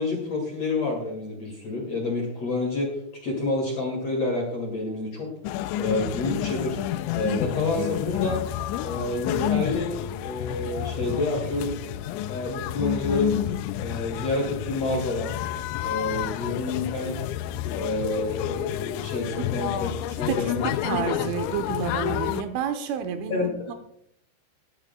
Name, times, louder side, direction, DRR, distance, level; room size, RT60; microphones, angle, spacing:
voice 1, 0.0-5.3 5.8-6.8 7.1-8.4 8.8-11.8 12.3-13.4 13.8-15.4 15.8-17.2 17.7-20.7 23.3-23.5, left 2 dB, 45° left, -1 dB, 2.3 m, -29 dB
sound 1, 5.4-22.4, left 12 dB, 90° left, 2.6 m, -30 dB
voice 2, 20.3-23.7, right 8 dB, 80° right, 7 dB, 3.2 m, -30 dB
20.5 x 11.0 x 2.3 m, 0.73 s
omnidirectional pair, 5.8 m